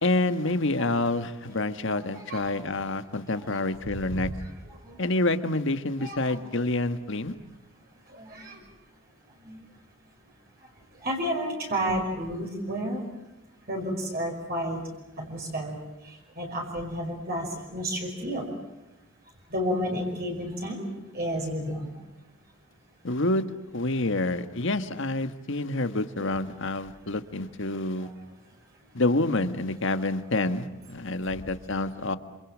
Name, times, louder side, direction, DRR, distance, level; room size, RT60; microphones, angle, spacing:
voice 1, 0.0-4.3 5.0-7.4 23.0-23.4 23.7-28.1 28.9-32.2, left 2 dB, 60° left, 10 dB, 1.6 m, -27 dB
voice 2, 8.2-8.6 9.5-9.6 11.0-13.0 13.7-14.8 15.2-15.8 16.4-17.5 17.7-18.5 19.5-20.9 21.1-21.9, equal, 45° right, 0 dB, 5.6 m, -31 dB
27.0 x 27.0 x 7.5 m, 0.97 s
head